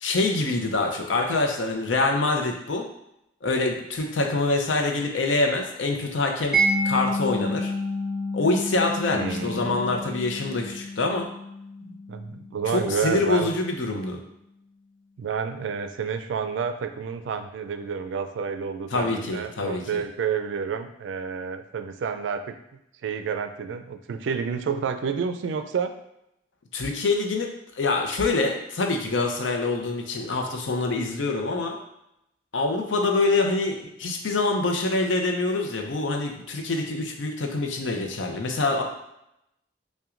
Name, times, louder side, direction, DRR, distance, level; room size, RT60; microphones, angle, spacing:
voice 1, 0.0-2.9 3.4-7.7 8.3-11.3 12.7-14.2 18.9-20.0 26.7-27.5 27.7-31.8 32.5-38.8, left 3 dB, 90° left, 3 dB, 0.6 m, -25 dB
Mallet percussion, 6.5-13.3, equal, ahead, 0.6 m, -29 dB
voice 2, 9.1-10.1 11.8-13.5 15.2-22.5 23.0-25.9, right 6 dB, 80° right, 9 dB, 0.3 m, -30 dB
5.7 x 2.2 x 2.5 m, 0.83 s
head